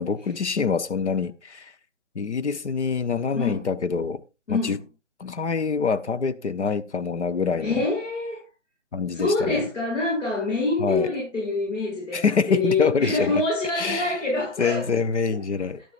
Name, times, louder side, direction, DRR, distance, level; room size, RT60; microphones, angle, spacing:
voice 1, 0.0-1.7 2.1-4.2 4.5-4.8 5.2-7.8 8.9-9.6 10.8-11.1 12.1-13.4 13.8-14.2 14.6-15.8, left 5 dB, 65° left, 1.0 m, -25 dB
voice 2, 4.5-4.8 7.6-8.4 9.1-14.9, left 3 dB, 80° left, 7.6 m, -26 dB
13.0 x 12.0 x 2.5 m
hypercardioid pair, 180°, 37 cm